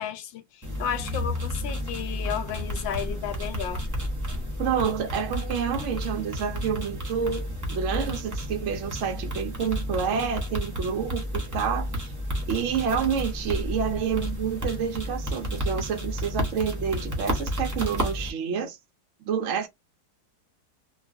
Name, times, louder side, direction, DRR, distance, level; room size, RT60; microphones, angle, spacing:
voice 1, 0.0-3.8, left 9 dB, 85° left, 1.4 m, -33 dB
sound 1, 0.6-18.3, equal, 20° right, 0.5 m, -31 dB
voice 2, 4.6-12.1 12.5-18.8 19.3-19.7, right 7 dB, 70° right, 0.7 m, -28 dB
3.1 x 2.2 x 2.5 m
omnidirectional pair, 2.0 m